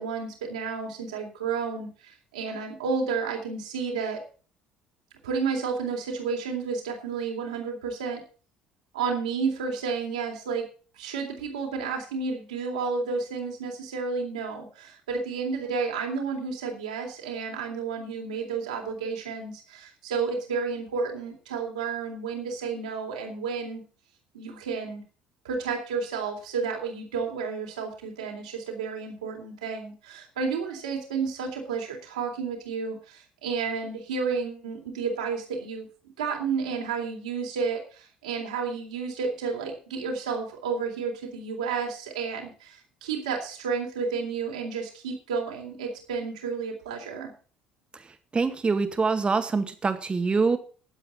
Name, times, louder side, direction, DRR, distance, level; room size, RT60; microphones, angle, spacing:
voice 1, 0.0-4.2 5.2-8.2 8.9-10.6 11.0-23.8 24.3-25.0 25.4-35.9 36.2-47.3, right 5 dB, 75° right, 1 dB, 3.6 m, -31 dB
voice 2, 48.3-50.6, right 4 dB, 25° right, 8 dB, 1.9 m, -24 dB
19.0 x 8.1 x 4.2 m, 0.38 s
figure-of-eight pair, 55°, 4 cm